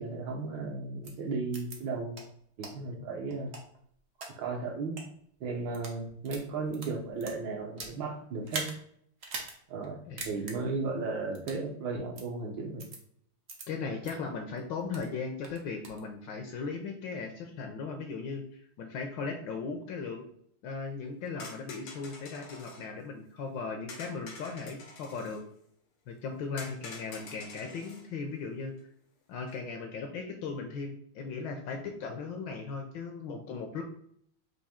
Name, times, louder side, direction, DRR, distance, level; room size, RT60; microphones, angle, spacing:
voice 1, 0.0-2.2 2.6-3.6 4.4-5.0 5.4-8.7 9.7-10.0 10.2-12.9, right 3 dB, 70° right, 2 dB, 1.3 m, -35 dB
sound 1, 1.0-1.1 1.5-1.8 2.1-2.2 2.6-2.7 3.3-4.3 4.8-5.0 5.6-6.0 6.2-8.0 8.4-8.7 9.2-9.5 9.8-9.9 10.2-10.5 11.3-11.6 12.1-12.2 12.8-13.0 13.5-13.6 14.0-14.1 14.6-15.1 15.4-16.0, right 3 dB, 90° right, 0.5 m, -40 dB
voice 2, 13.7-20.2 20.6-25.4 26.1-28.7 29.3-33.8, left 4 dB, 75° left, 4 dB, 1.1 m, -37 dB
sound 2, 21.4-22.9 23.9-25.4 26.6-28.1 29.4-29.6, left 3 dB, 90° left, 1.8 m, -47 dB
4.8 x 2.6 x 4.2 m, 0.66 s
omnidirectional pair, 2.4 m